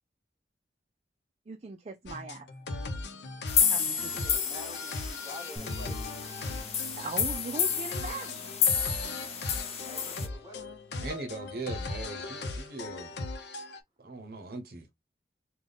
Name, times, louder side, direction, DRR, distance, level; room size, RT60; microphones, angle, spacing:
voice 1, 1.5-2.5 3.7-4.4 7.0-8.5, right 3 dB, 35° right, 0.4 m, -40 dB
sound 1, 2.1-13.8, left 3 dB, 75° left, 0.7 m, -39 dB
sound 2, 3.5-10.3, left 7 dB, 35° left, 0.7 m, -30 dB
voice 2, 4.0-6.1 9.1-10.7, left 1 dB, 20° right, 1.6 m, -48 dB
sound 3, 5.6-11.8, left 2 dB, 10° left, 1.1 m, -50 dB
voice 3, 11.0-13.2 14.0-14.9, right 3 dB, 55° right, 0.7 m, -40 dB
3.5 x 2.3 x 3.8 m
head